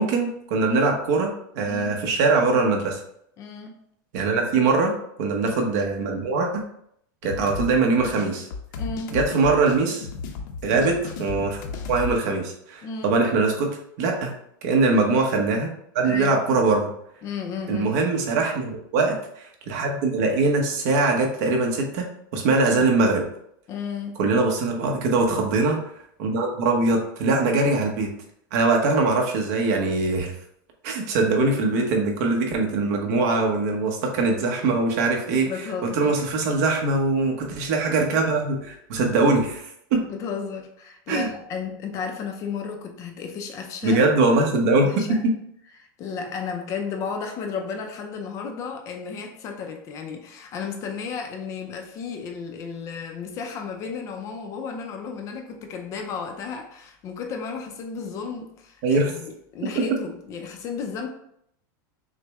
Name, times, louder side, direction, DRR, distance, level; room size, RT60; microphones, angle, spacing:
voice 1, 0.0-3.0 4.1-4.9 5.2-6.6 7.2-8.5 9.1-10.1 10.6-11.6 11.9-13.7 14.0-14.3 14.6-16.9 17.7-23.2 24.2-25.8 26.2-28.1 28.5-30.3 30.8-35.5 35.8-39.6 39.9-40.0 41.1-41.3 43.8-45.3 58.8-59.1 59.7-59.8, right 3 dB, 55° right, 1 dB, 1.0 m, -22 dB
voice 2, 1.7-2.0 3.4-3.8 8.8-9.2 12.8-13.2 16.0-16.4 17.2-18.0 23.7-24.2 35.4-36.1 40.0-44.0 44.8-45.3 45.8-61.1, left 5 dB, 30° left, 4 dB, 0.5 m, -33 dB
sound 1, 7.2-12.2, left 5 dB, 65° left, 0.7 m, -34 dB
6.2 x 2.1 x 3.5 m, 0.71 s
supercardioid pair, 165°, 11 cm